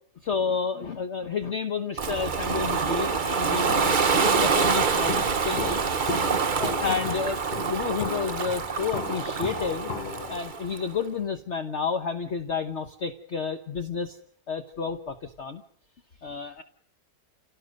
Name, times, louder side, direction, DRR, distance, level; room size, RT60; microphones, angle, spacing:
voice 1, 0.2-4.0 4.2-5.9 6.6-9.9 10.3-14.2 14.5-15.6 16.2-16.6, left 5 dB, 50° left, 7 dB, 1.3 m, -30 dB
Ocean, 2.0-10.8, right 5 dB, 35° right, 0.9 m, -26 dB
Walk footsteps, 3.7-10.4, left 5 dB, 85° left, 2.1 m, -36 dB
29.0 x 17.5 x 6.5 m, 0.64 s
omnidirectional pair, 1.7 m